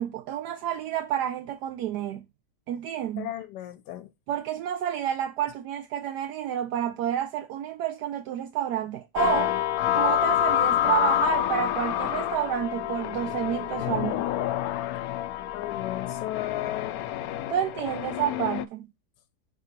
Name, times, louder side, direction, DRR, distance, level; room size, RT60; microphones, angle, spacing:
voice 1, 0.0-2.2 2.7-3.3 4.3-9.5 9.9-14.3 17.5-18.9, right 10 dB, 75° right, 1.2 m, -29 dB
voice 2, 3.2-4.1 15.5-17.0, left 14 dB, 90° left, 1.3 m, -35 dB
sound 1, 9.2-18.6, left 12 dB, 70° left, 0.9 m, -27 dB
6.2 x 3.8 x 4.3 m
omnidirectional pair, 1.8 m